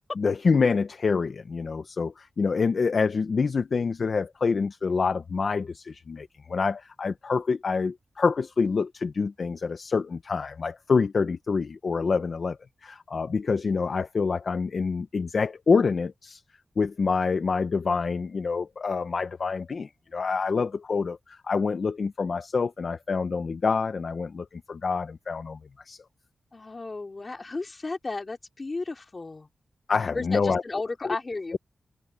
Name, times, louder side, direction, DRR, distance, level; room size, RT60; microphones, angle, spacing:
voice 1, 0.2-12.6 12.8-16.4 16.8-25.6 25.9-26.0 29.9-30.6 31.0-31.2, left 5 dB, 45° left, 0.6 m, -26 dB
voice 2, 26.5-29.5 30.1-31.6, left 3 dB, 30° left, 3.3 m, -34 dB
open air
wide cardioid pair, 175°, 0 cm